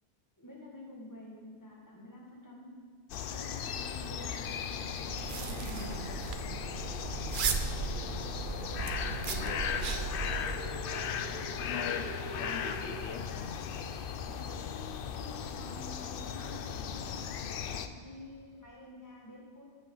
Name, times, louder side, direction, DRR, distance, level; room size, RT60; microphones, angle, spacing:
voice 1, 0.4-2.8 3.3-6.0 14.3-19.6, left 1 dB, 15° left, -3 dB, 1.8 m, -49 dB
sound 1, 3.1-17.9, left 7 dB, 60° left, 0.7 m, -37 dB
sound 2, 5.1-10.5, right 5 dB, 55° right, 0.7 m, -36 dB
sound 3, 8.1-13.0, right 4 dB, 70° right, 1.2 m, -47 dB
voice 2, 8.2-9.9 11.4-12.0 12.4-13.2, left 7 dB, 80° left, 7 dB, 1.1 m, -43 dB
12.5 x 8.1 x 3.9 m, 2.1 s
omnidirectional pair, 1.2 m